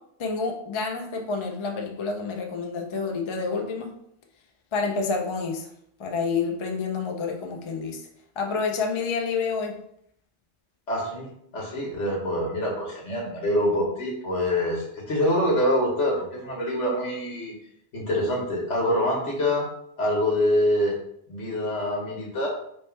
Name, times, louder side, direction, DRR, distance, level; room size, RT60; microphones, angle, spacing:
voice 1, 0.2-3.9 4.7-5.7 6.0-8.0 8.4-9.8, left 4 dB, 40° left, 3 dB, 0.4 m, -28 dB
voice 2, 10.9-11.3 11.5-17.5 17.9-19.7 20.0-20.9 21.3-22.5, left 1 dB, 85° left, -2 dB, 1.6 m, -25 dB
3.1 x 3.1 x 4.4 m, 0.71 s
omnidirectional pair, 1.2 m